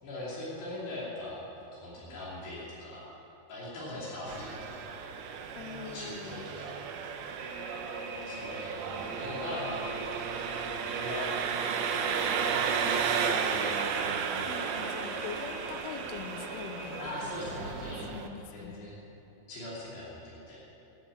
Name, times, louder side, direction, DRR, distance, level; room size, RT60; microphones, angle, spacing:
voice 1, 0.0-1.4 1.7-3.1 3.5-4.9 5.8-6.7 8.2-9.8 10.8-11.3 12.2-13.8 17.0-18.0 18.5-19.0 19.5-20.7, left 1 dB, 65° left, -7 dB, 4.9 m, -41 dB
Engine, 4.3-18.3, right 6 dB, 75° right, 2.4 m, -34 dB
voice 2, 5.5-6.4 14.5-17.8 18.1-18.8, left 8 dB, 85° left, 8 dB, 2.3 m, -43 dB
sound 1, 7.4-18.2, right 1 dB, 50° right, 2.3 m, -44 dB
14.5 x 10.0 x 8.9 m, 2.9 s
omnidirectional pair, 5.3 m